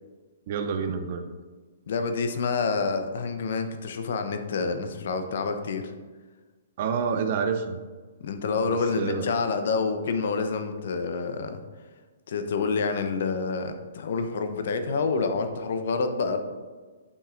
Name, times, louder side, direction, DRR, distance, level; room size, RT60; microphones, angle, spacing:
voice 1, 0.5-1.3 6.8-7.8 8.6-9.3, right 6 dB, 50° right, 8 dB, 0.5 m, -28 dB
voice 2, 1.9-5.9 8.2-11.6 12.3-16.4, left 4 dB, 65° left, 7 dB, 0.8 m, -28 dB
8.4 x 5.5 x 2.5 m, 1.4 s
hypercardioid pair, 140°, 0 cm